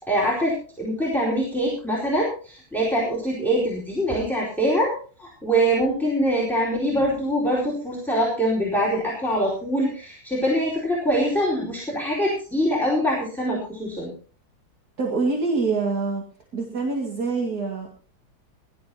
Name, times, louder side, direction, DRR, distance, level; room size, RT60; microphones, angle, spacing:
voice 1, 0.0-14.1, equal, ahead, -6 dB, 4.4 m, -24 dB
voice 2, 15.0-16.2 16.5-17.9, right 4 dB, 55° right, 0 dB, 2.6 m, -25 dB
21.5 x 13.0 x 2.9 m, 0.40 s
omnidirectional pair, 2.0 m